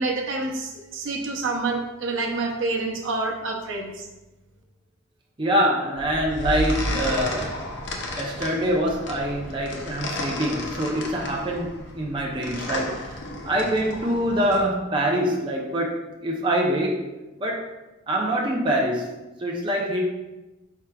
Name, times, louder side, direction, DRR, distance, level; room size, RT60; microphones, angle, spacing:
voice 1, 0.0-4.1, right 3 dB, 80° right, 1 dB, 0.7 m, -27 dB
voice 2, 5.4-7.6 8.2-17.0 17.4-17.7 18.1-19.1 19.4-20.0, equal, 25° right, -1 dB, 0.5 m, -25 dB
sound 1, 6.0-14.6, left 1 dB, 65° left, 0.7 m, -32 dB
4.6 x 4.6 x 2.3 m, 1.0 s
head